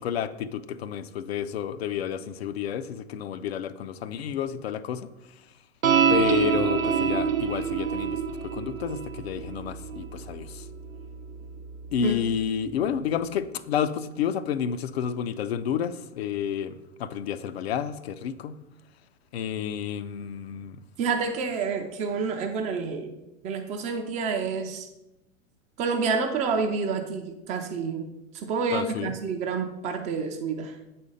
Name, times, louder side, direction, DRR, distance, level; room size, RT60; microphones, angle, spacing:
voice 1, 0.0-5.1 6.1-10.7 11.9-16.7 17.0-18.6 19.3-20.8 28.7-29.1, left 8 dB, 50° left, 12 dB, 0.5 m, -30 dB
sound 1, 5.8-12.5, right 7 dB, 80° right, 0.6 m, -27 dB
voice 2, 21.0-23.1 23.4-24.9 25.8-28.1 28.3-30.8, right 5 dB, 20° right, 5 dB, 0.4 m, -28 dB
8.1 x 4.3 x 5.1 m, 0.95 s
figure-of-eight pair, 95°, 40 cm